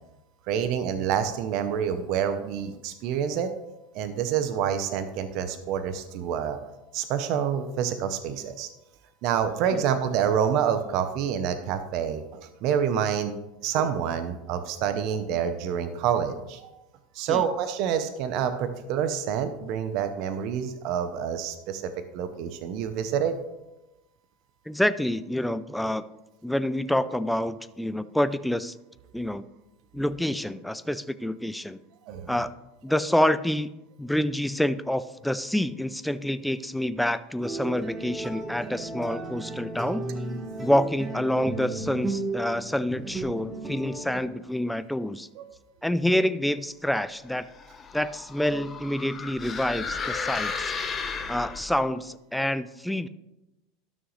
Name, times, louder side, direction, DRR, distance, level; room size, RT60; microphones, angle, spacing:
voice 1, 0.5-3.5 3.9-6.6 6.9-8.7 9.2-12.2 12.6-16.8 17.1-23.4 32.1-32.3 45.4-45.5, right 8 dB, 55° right, 9 dB, 0.7 m, -27 dB
voice 2, 24.7-26.0 26.4-28.7 29.1-29.4 29.9-31.8 32.3-32.5 32.8-33.7 34.0-40.0 40.6-45.3 45.8-47.4 47.9-50.7 51.3-53.1, left 1 dB, ahead, 13 dB, 0.3 m, -27 dB
sound 1, 37.4-44.3, right 2 dB, 15° right, 1.2 m, -34 dB
sound 2, 47.4-51.9, left 5 dB, 25° left, 0.8 m, -34 dB
12.5 x 6.3 x 3.1 m, 0.97 s
supercardioid pair, 130°, 0 cm